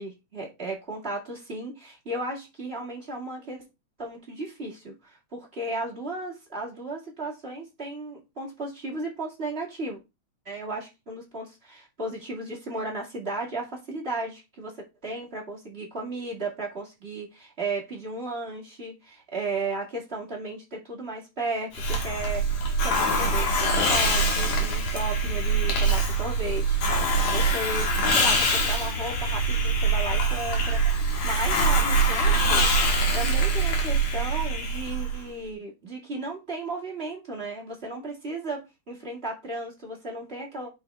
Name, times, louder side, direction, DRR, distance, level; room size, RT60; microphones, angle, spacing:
voice 1, 0.0-3.7 4.0-10.0 10.5-14.7 15.0-26.8 27.3-32.7 33.1-40.7, right 2 dB, 25° right, 1.9 m, -35 dB
Hiss, 21.7-35.2, right 2 dB, 75° left, 3.0 m, -24 dB
6.6 x 5.9 x 3.4 m
omnidirectional pair, 3.3 m